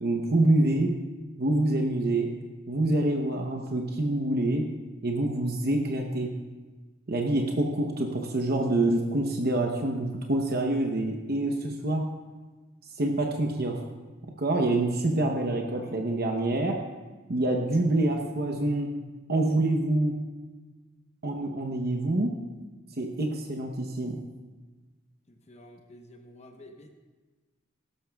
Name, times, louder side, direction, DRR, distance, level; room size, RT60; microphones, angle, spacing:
voice 1, 0.0-1.0 1.4-2.4 2.7-4.7 5.0-6.3 7.1-12.0 13.0-13.9 14.4-16.8 17.3-18.9 19.3-20.1 21.2-22.4 23.0-24.2, right 2 dB, 50° right, 2 dB, 0.9 m, -26 dB
voice 2, 25.3-27.0, left 1 dB, 35° left, 4 dB, 0.9 m, -50 dB
17.0 x 13.0 x 2.3 m, 1.3 s
head